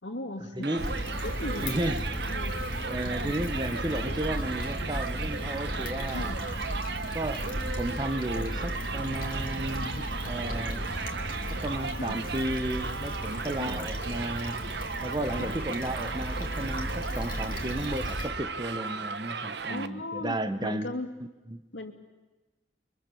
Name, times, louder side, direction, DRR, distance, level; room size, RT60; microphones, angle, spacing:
voice 1, 0.0-0.7 1.2-2.0 2.3-2.6 3.2-3.3 6.1-6.4 12.0-12.2 13.6-13.9 15.3-15.6 19.7-21.1 21.7-21.9, left 1 dB, 85° left, 3 dB, 2.9 m, -37 dB
voice 2, 0.5-0.9 1.6-2.1 2.9-6.3 7.1-10.9 11.5-14.7 15.0-20.9 21.5-21.6, right 1 dB, 25° right, 10 dB, 1.1 m, -34 dB
Crowd, 0.6-19.9, right 5 dB, 65° right, 1.0 m, -36 dB
Stream / Traffic noise roadway noise / Trickle dribble, 0.8-18.3, equal, 50° left, 2.9 m, -35 dB
29.5 x 23.5 x 7.1 m, 1.1 s
head